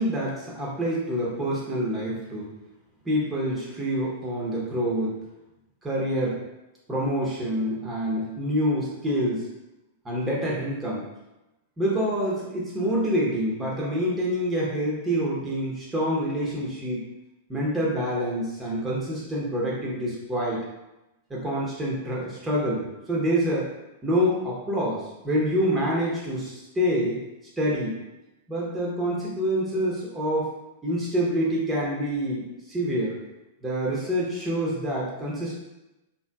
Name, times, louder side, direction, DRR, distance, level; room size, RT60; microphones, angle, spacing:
voice 1, 0.0-2.5 3.0-5.1 5.8-6.4 6.9-9.5 10.0-11.1 11.8-17.0 17.5-20.6 21.3-23.7 24.0-27.2 27.6-27.9 28.5-30.5 30.8-33.2 33.6-35.6, equal, 15° right, -5 dB, 0.8 m, -26 dB
3.6 x 2.7 x 2.3 m, 0.98 s
figure-of-eight pair, 100°, 0 cm